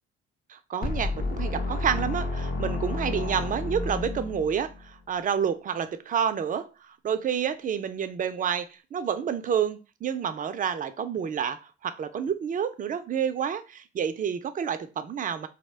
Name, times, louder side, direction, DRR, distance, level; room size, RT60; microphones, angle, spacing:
voice 1, 0.5-15.5, right 8 dB, 30° right, 0.4 m, -29 dB
sound 1, 0.8-4.8, left 2 dB, 30° left, 0.5 m, -30 dB
2.2 x 2.1 x 3.2 m
hypercardioid pair, 60°, 29 cm